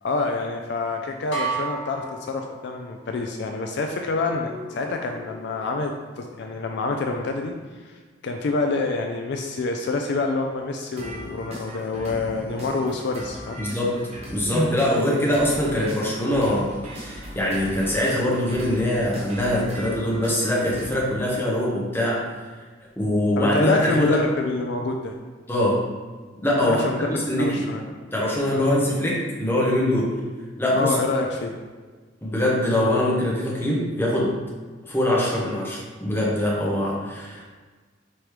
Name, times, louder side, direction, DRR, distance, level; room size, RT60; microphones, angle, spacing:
voice 1, 0.0-7.6 7.8-8.0 8.2-13.6 23.4-25.2 26.6-27.9 28.5-28.7 30.7-31.6, left 3 dB, 60° left, 3 dB, 0.3 m, -27 dB
sound 1, 1.3-3.1, right 4 dB, 80° left, 1.3 m, -31 dB
sound 2, 4.2-5.9 11.0-20.9, equal, 35° right, 0.9 m, -39 dB
voice 2, 13.6-14.0 14.3-22.3 23.0-24.2 25.5-25.8 26.4-27.6 28.1-30.1 30.6-30.9 32.2-34.4 34.9-37.5, left 1 dB, 10° left, -5 dB, 0.9 m, -23 dB
5.0 x 3.0 x 3.1 m, 1.4 s
head